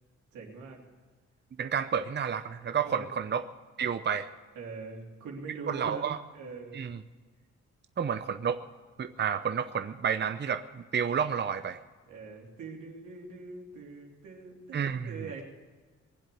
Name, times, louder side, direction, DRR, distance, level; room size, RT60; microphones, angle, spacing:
voice 1, 0.3-0.8 2.8-3.2 4.6-6.1 6.3-6.9 12.1-15.4, right 4 dB, 85° right, -1 dB, 3.4 m, -43 dB
voice 2, 1.6-3.5 3.8-4.3 5.7-6.2 6.7-7.0 8.0-8.6 9.0-11.8 14.7-15.1, right 7 dB, 35° right, 10 dB, 0.7 m, -30 dB
20.5 x 7.7 x 8.4 m, 1.4 s
cardioid pair, 70°, 30 cm